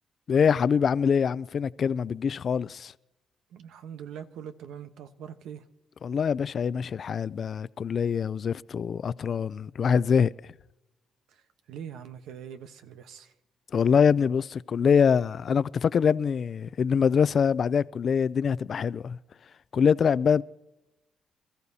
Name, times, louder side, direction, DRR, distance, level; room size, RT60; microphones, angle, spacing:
voice 1, 0.3-2.9 6.0-10.3 13.7-19.2 19.7-20.4, left 6 dB, 50° left, 0.4 m, -24 dB
voice 2, 3.5-5.7 11.3-13.3, right 8 dB, 85° right, 1.0 m, -43 dB
27.0 x 14.0 x 2.8 m
cardioid pair, 90°, 0 cm